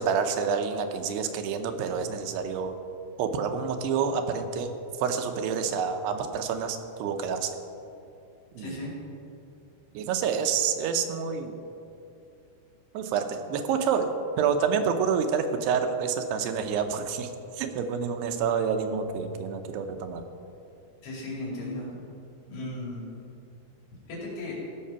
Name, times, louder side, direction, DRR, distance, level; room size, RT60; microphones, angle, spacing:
voice 1, 0.0-2.7 3.2-7.5 8.6-8.8 9.9-11.6 12.9-17.3 17.6-20.2, right 6 dB, 90° right, 7 dB, 2.9 m, -28 dB
voice 2, 8.6-8.9 21.0-22.0 22.5-23.0 24.1-24.5, left 1 dB, 85° left, -4 dB, 4.8 m, -36 dB
16.0 x 6.6 x 5.7 m, 2.7 s
omnidirectional pair, 4.6 m